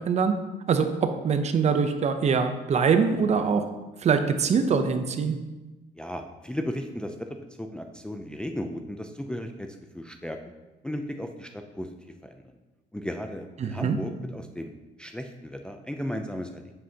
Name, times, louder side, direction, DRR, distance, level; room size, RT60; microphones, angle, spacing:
voice 1, 0.7-3.6 4.0-5.4 13.6-14.0, right 6 dB, 40° right, 8 dB, 0.7 m, -23 dB
voice 2, 6.0-7.1 7.6-9.7 9.9-10.4 10.8-12.0 12.2-12.4 12.9-14.7 15.0-16.7, left 1 dB, 5° left, 5 dB, 0.4 m, -35 dB
7.8 x 7.6 x 2.8 m, 1.1 s
cardioid pair, 110°, 17 cm